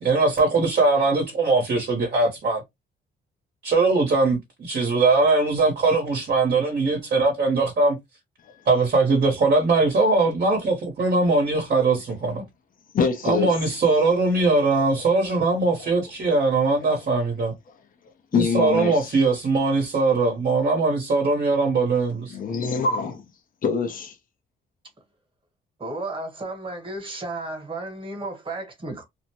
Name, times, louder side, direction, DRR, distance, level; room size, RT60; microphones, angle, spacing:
voice 1, 0.0-2.6 3.6-8.0 8.6-12.4 13.2-17.5 18.3-22.4, right 3 dB, 45° right, 1.1 m, -21 dB
voice 2, 12.9-13.6 14.0-14.1 14.9-15.1 16.8-16.9 18.3-19.1 22.3-23.2 23.6-24.2, left 5 dB, 45° left, 0.7 m, -25 dB
voice 3, 25.8-29.0, right 2 dB, 25° right, 1.3 m, -33 dB
2.6 x 2.1 x 2.9 m
cardioid pair, 90°, 20 cm